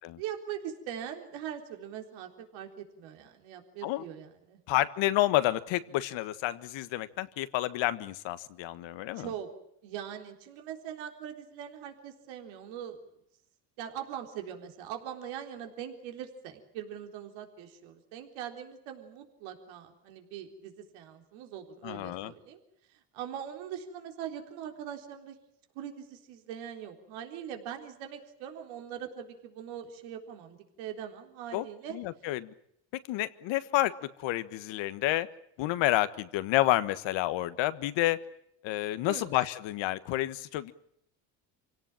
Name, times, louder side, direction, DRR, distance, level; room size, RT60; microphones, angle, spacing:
voice 1, 0.2-4.6 9.2-9.5 9.8-13.0 13.8-22.6 22.9-25.4 25.7-32.0 39.1-39.3, right 9 dB, 75° right, 4 dB, 4.0 m, -41 dB
voice 2, 4.7-9.3 21.8-22.3 31.5-32.5 32.9-35.3 35.6-38.2 38.6-40.7, left 15 dB, 70° left, 13 dB, 1.5 m, -29 dB
26.5 x 17.5 x 8.9 m, 0.75 s
supercardioid pair, 80°, 47 cm